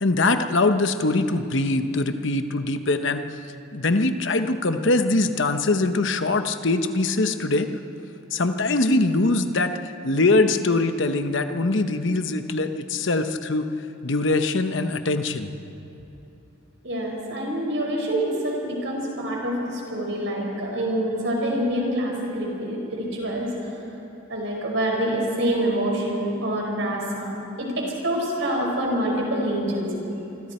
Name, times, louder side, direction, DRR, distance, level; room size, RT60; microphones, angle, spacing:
voice 1, 0.0-3.3 3.7-7.7 8.3-13.7 14.0-15.5, left 2 dB, 60° left, 8 dB, 0.9 m, -22 dB
voice 2, 16.8-23.5 24.3-29.9, right 1 dB, 60° right, -1 dB, 5.3 m, -26 dB
26.0 x 25.0 x 4.4 m, 2.9 s
head